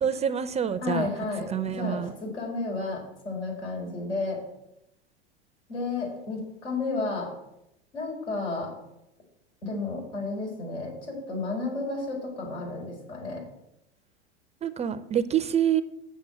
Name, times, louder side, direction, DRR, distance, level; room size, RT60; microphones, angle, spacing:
voice 1, 0.0-1.1 1.5-2.1 14.6-15.8, right 9 dB, 20° right, 12 dB, 0.5 m, -26 dB
voice 2, 0.8-4.4 5.7-7.3 7.9-8.7 9.6-13.4, left 3 dB, 85° left, -2 dB, 4.8 m, -32 dB
7.5 x 6.9 x 7.7 m, 0.86 s
hypercardioid pair, 90°, 33 cm